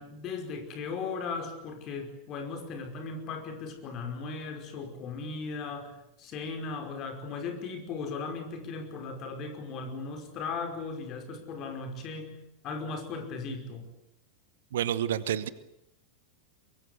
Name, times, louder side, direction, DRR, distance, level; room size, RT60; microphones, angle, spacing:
voice 1, 0.0-12.4 12.6-13.9, left 4 dB, 35° left, 5 dB, 5.2 m, -37 dB
voice 2, 14.7-15.5, right 10 dB, 60° right, 17 dB, 1.1 m, -29 dB
23.5 x 23.0 x 8.3 m, 0.81 s
figure-of-eight pair, 90°, 0 cm